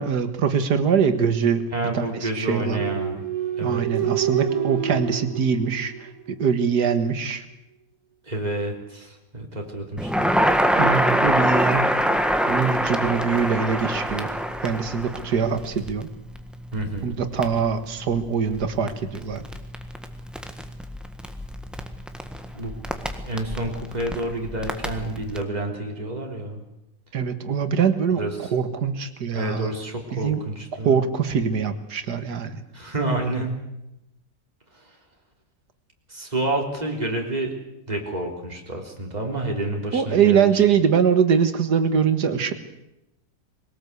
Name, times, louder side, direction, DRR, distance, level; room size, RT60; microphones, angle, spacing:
voice 1, 0.0-1.6 1.9-2.8 3.6-7.4 10.8-11.9 12.5-14.3 14.6-16.1 17.0-19.4 27.1-29.7 30.1-30.4 30.8-32.6 39.9-42.5, right 6 dB, 70° right, 9 dB, 2.1 m, -23 dB
voice 2, 1.7-3.2 3.6-3.8 8.3-10.4 16.7-17.1 22.5-26.6 28.2-28.5 29.3-31.0 32.7-33.5 34.7-34.9 36.1-37.5 37.9-40.6, right 1 dB, 25° right, 1 dB, 3.7 m, -29 dB
sound 1, 2.6-6.4, right 10 dB, 55° right, 2.0 m, -27 dB
Crackle, 10.0-25.4, equal, ahead, 1.4 m, -26 dB
22.0 x 18.5 x 8.2 m, 0.90 s
omnidirectional pair, 1.8 m